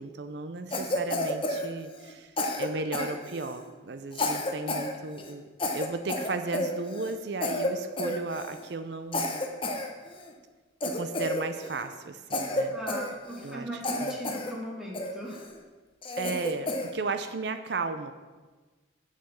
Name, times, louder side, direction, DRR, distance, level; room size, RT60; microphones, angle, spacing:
voice 1, 0.0-5.4 5.7-9.4 10.8-12.8 13.4-13.7 14.0-14.2 16.2-18.1, right 3 dB, 60° right, 9 dB, 0.5 m, -35 dB
Cough, 0.7-2.1 2.4-3.6 4.1-4.9 5.2-5.3 5.6-7.1 7.4-7.7 8.0-8.6 9.1-10.3 10.8-11.9 12.3-13.5 13.8-14.5 14.9-15.5 16.0-16.9, left 1 dB, 25° left, 0.9 m, -31 dB
voice 2, 12.7-15.5, equal, 5° right, -3 dB, 1.7 m, -38 dB
7.8 x 6.7 x 6.9 m, 1.3 s
head